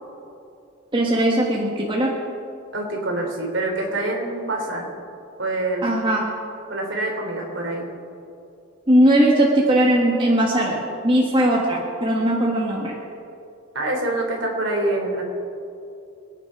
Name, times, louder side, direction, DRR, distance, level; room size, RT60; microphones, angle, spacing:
voice 1, 0.9-2.2 5.8-6.3 8.9-13.0, right 1 dB, 25° right, -2 dB, 1.5 m, -19 dB
voice 2, 2.7-4.9 5.4-5.8 6.7-7.9 13.7-15.2, right 2 dB, 65° right, 0 dB, 3.4 m, -25 dB
26.5 x 9.3 x 4.8 m, 2.6 s
head